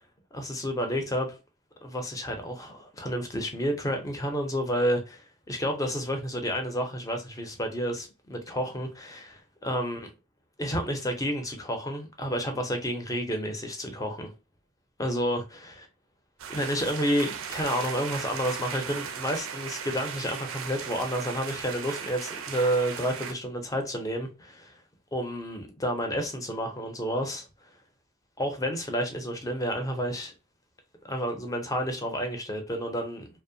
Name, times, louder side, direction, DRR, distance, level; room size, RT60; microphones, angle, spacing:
voice 1, 0.3-1.4 1.8-10.1 10.6-14.3 15.0-15.9 16.5-24.8 25.1-27.5 28.4-30.3 31.1-33.3, equal, 15° left, 0.5 m, -30 dB
sound 1, 16.4-23.3, right 7 dB, 75° right, 0.4 m, -37 dB
2.6 x 2.1 x 2.6 m
head